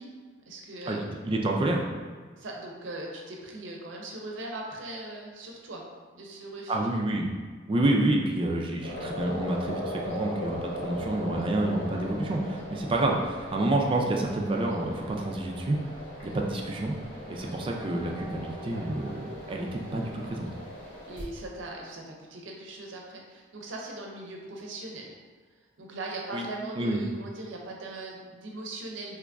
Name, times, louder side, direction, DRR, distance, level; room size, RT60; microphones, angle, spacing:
voice 1, 0.0-1.1 2.4-5.8 6.1-6.9 21.0-25.1 25.8-29.2, right 2 dB, 80° right, -1 dB, 0.6 m, -40 dB
voice 2, 0.9-1.9 6.7-7.3 7.7-15.8 16.2-17.0 17.3-20.5 26.3-26.4 26.8-27.0, right 1 dB, 25° right, 0 dB, 0.4 m, -28 dB
sound 1, 8.8-21.2, left 1 dB, 80° left, 1.0 m, -39 dB
3.0 x 2.4 x 3.4 m, 1.5 s
head